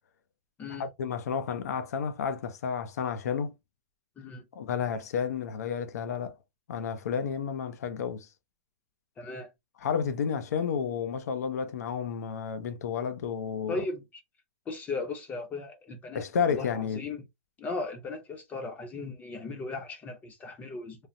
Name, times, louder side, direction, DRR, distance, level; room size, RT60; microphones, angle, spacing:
voice 1, 0.8-3.5 4.5-6.4 6.7-8.3 9.8-13.8 16.1-17.0, left 7 dB, 80° left, 0.6 m, -31 dB
voice 2, 9.2-9.5 13.7-14.2 14.7-17.2 17.6-21.1, left 3 dB, 20° left, 0.6 m, -37 dB
3.2 x 2.0 x 2.5 m
hypercardioid pair, 145°, 9 cm